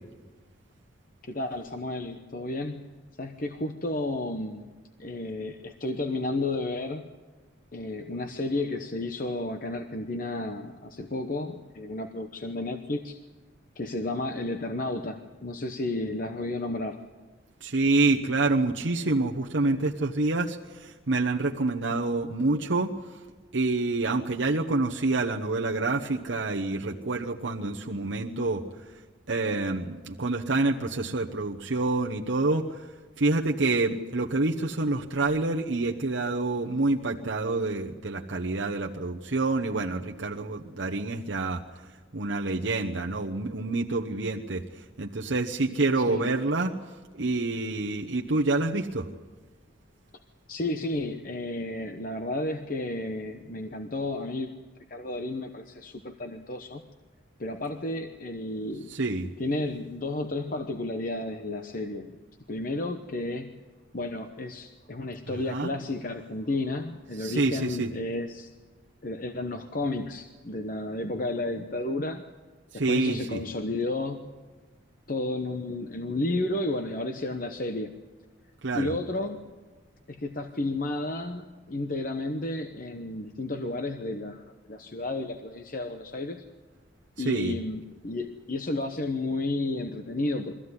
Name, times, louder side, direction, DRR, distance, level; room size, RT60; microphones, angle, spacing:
voice 1, 1.2-2.9 3.2-4.7 5.0-7.0 7.7-13.2 13.8-17.0 46.0-46.3 50.5-54.5 54.9-56.8 57.4-58.9 59.4-62.1 62.5-63.5 63.9-68.5 69.0-72.2 72.7-74.3 75.1-78.0 78.7-79.4 80.1-86.4 87.2-90.5, left 2 dB, 45° left, 6 dB, 0.9 m, -32 dB
voice 2, 17.6-22.9 23.5-28.6 29.3-32.8 33.2-41.6 42.1-44.6 45.0-46.7 47.1-49.1 58.9-59.3 65.3-65.7 67.2-67.9 72.7-73.4 78.6-78.9 87.2-87.5, right 2 dB, 70° right, 0 dB, 1.0 m, -27 dB
23.0 x 15.0 x 9.7 m, 1.3 s
head